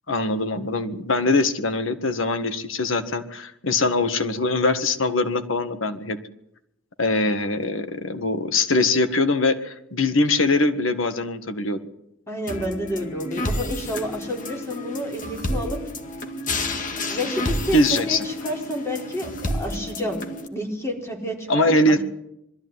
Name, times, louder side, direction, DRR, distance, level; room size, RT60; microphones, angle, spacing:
voice 1, 0.1-6.2 7.0-11.8 17.7-18.3 21.5-22.0, left 2 dB, 85° left, 9 dB, 1.8 m, -22 dB
voice 2, 12.3-15.8 17.1-20.2 20.5-22.0, equal, 15° left, 1 dB, 4.2 m, -30 dB
sound 1, 12.5-20.5, left 1 dB, 45° left, 2.1 m, -30 dB
22.0 x 14.0 x 9.6 m, 0.80 s
head